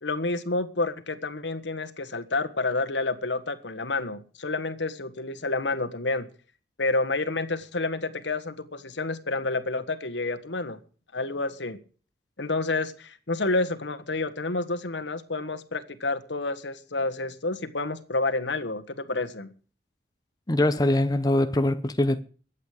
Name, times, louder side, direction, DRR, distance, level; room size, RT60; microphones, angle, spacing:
voice 1, 0.0-6.3 6.8-10.8 11.1-11.8 12.4-19.5, left 3 dB, 85° left, 1.5 m, -29 dB
voice 2, 20.5-22.2, left 1 dB, 20° left, 0.8 m, -23 dB
22.0 x 8.5 x 5.0 m
head